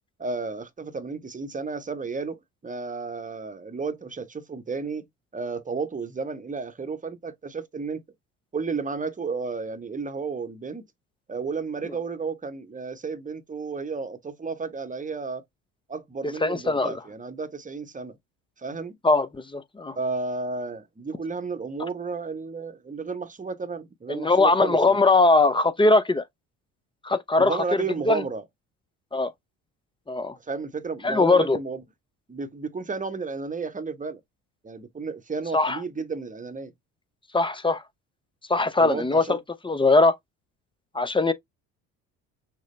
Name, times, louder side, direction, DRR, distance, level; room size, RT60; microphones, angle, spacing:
voice 1, 0.2-5.0 5.3-8.0 8.5-10.9 11.3-15.4 15.9-18.2 18.6-18.9 20.0-25.0 27.4-28.4 30.4-31.8 32.3-34.2 34.6-36.7 38.8-39.4, right 4 dB, 20° right, 1.0 m, -32 dB
voice 2, 16.4-17.0 19.0-20.0 24.1-26.2 27.0-27.6 28.1-28.2 29.1-29.3 30.1-30.4 31.0-31.6 35.5-35.8 37.3-37.8 38.5-39.4 39.6-40.2 40.9-41.3, left 3 dB, 10° left, 0.7 m, -20 dB
6.4 x 2.2 x 3.2 m
hypercardioid pair, 60°, 41 cm